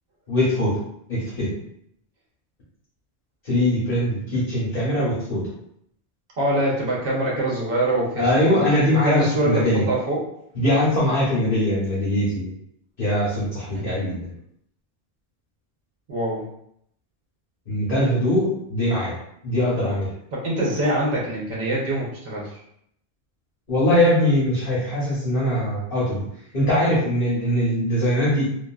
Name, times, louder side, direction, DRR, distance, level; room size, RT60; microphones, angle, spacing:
voice 1, 0.3-0.8 1.1-1.5 3.4-5.5 8.2-9.8 10.5-12.5 13.0-14.3 17.7-19.1 19.4-20.1 23.7-26.2 26.5-28.5, left 1 dB, 55° left, -8 dB, 1.1 m, -21 dB
voice 2, 6.4-10.3 13.7-14.0 16.1-16.5 20.3-22.6, right 1 dB, 65° right, -4 dB, 1.1 m, -24 dB
2.7 x 2.6 x 2.3 m, 0.72 s
omnidirectional pair, 1.1 m